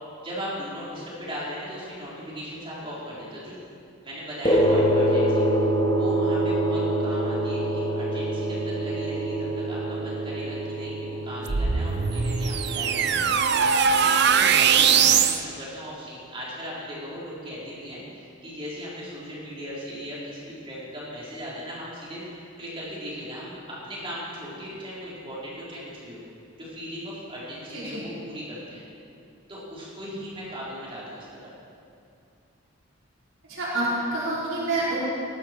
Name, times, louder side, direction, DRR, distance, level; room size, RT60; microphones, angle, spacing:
voice 1, 0.2-3.6 4.0-5.4 5.9-13.8 14.3-23.6 23.8-26.2 26.6-28.8 29.5-31.5, equal, 25° right, -7 dB, 4.2 m, -38 dB
sound 1, 4.4-13.2, right 1 dB, 20° left, 1.4 m, -25 dB
sound 2, 11.5-15.4, right 6 dB, 55° right, 0.6 m, -21 dB
voice 2, 27.7-28.0 33.4-35.0, right 2 dB, 80° right, -9 dB, 4.6 m, -27 dB
18.0 x 13.0 x 4.6 m, 2.5 s
head